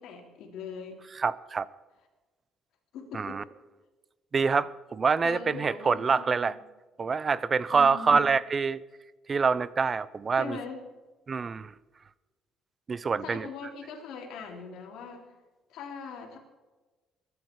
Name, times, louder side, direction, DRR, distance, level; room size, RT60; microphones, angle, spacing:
voice 1, 0.0-1.0 2.9-3.4 5.2-6.5 7.7-8.3 10.4-10.8 13.2-15.3 15.7-16.4, left 5 dB, 70° left, 3.7 m, -41 dB
voice 2, 1.2-1.7 3.1-3.4 4.3-6.6 7.0-8.8 9.3-10.6 11.3-11.7 12.9-13.5, right 5 dB, 25° right, 0.5 m, -26 dB
21.5 x 12.0 x 4.7 m
cardioid pair, 155°, 0 cm